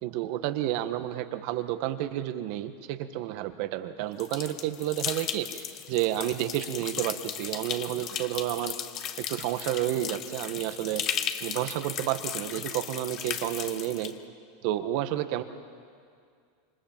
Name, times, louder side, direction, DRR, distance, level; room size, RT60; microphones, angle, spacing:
voice 1, 0.0-8.7 9.2-11.0 11.4-14.1 14.6-15.4, right 13 dB, 60° right, 9 dB, 1.6 m, -30 dB
sound 1, 4.2-14.1, left 9 dB, 40° left, 1.4 m, -36 dB
27.0 x 25.0 x 7.5 m, 2.2 s
supercardioid pair, 125°, 0 cm